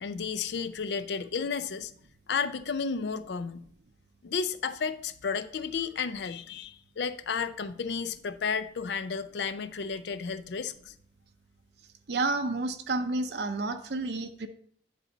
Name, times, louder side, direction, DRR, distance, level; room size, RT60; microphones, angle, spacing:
voice 1, 0.0-1.9 2.3-3.6 4.2-10.9, left 5 dB, 75° left, 0.5 m, -32 dB
voice 2, 12.1-14.5, right 3 dB, 70° right, 0.6 m, -30 dB
10.5 x 4.0 x 3.9 m
head